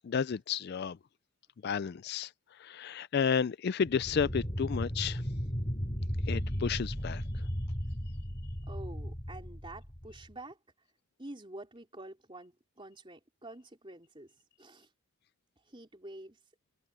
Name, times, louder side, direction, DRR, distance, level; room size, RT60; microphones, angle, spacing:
voice 1, 0.0-1.0 1.6-2.3 2.6-5.2 6.3-7.4, left 6 dB, 45° left, 0.3 m, -32 dB
sound 1, 3.9-10.3, equal, 25° left, 3.0 m, -35 dB
voice 2, 8.7-10.6 11.2-14.3 14.6-14.9 15.7-16.4, right 1 dB, 25° right, 3.6 m, -48 dB
head